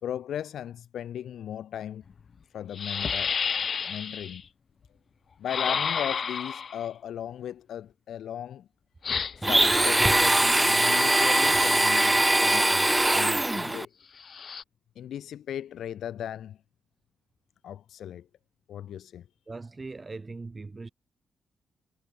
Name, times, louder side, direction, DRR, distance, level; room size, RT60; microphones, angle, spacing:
voice 1, 0.0-2.0 2.5-3.3 3.8-4.4 5.4-8.7 9.4-13.9 15.0-16.6 17.6-18.3 18.7-19.2, left 10 dB, 75° left, 1.2 m, -37 dB
sound 1, 2.1-2.2 2.7-4.4 5.5-6.9 9.0-9.6 10.6-12.0 14.2-14.6, left 6 dB, 60° left, 0.5 m, -31 dB
Domestic sounds home sounds, 9.4-13.9, right 1 dB, 15° right, 0.4 m, -22 dB
voice 2, 19.5-20.9, right 3 dB, 35° right, 1.5 m, -40 dB
supercardioid pair, 50°, 0 cm